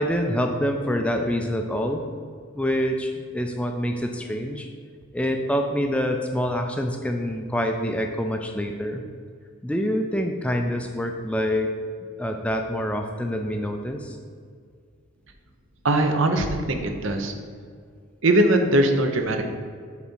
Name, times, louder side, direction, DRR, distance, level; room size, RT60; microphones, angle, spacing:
voice 1, 0.0-2.0 2.5-4.7 5.1-9.0 9.6-11.7 12.2-14.2, equal, 5° left, 4 dB, 0.4 m, -26 dB
voice 2, 15.8-17.3 18.2-19.4, right 1 dB, 65° right, 5 dB, 0.8 m, -21 dB
7.2 x 4.1 x 6.2 m, 2.1 s
head